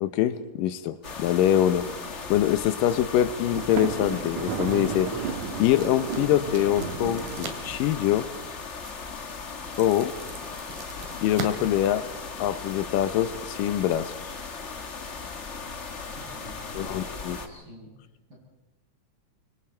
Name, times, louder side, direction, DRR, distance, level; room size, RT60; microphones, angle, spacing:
voice 1, 0.0-1.9 2.3-5.1 5.6-8.3 9.8-10.1 11.2-12.0 12.4-14.1 16.8-17.4, left 12 dB, 80° left, 12 dB, 2.5 m, -24 dB
sound 1, 1.0-17.5, left 4 dB, 55° left, 0.7 m, -38 dB
Thunder, 3.5-8.1, right 6 dB, 65° right, 2.6 m, -33 dB
sound 2, 4.6-12.7, right 5 dB, 90° right, 4.0 m, -43 dB
voice 2, 15.9-17.9, equal, 30° right, -3 dB, 8.6 m, -47 dB
25.0 x 24.5 x 4.5 m, 1.1 s
omnidirectional pair, 3.8 m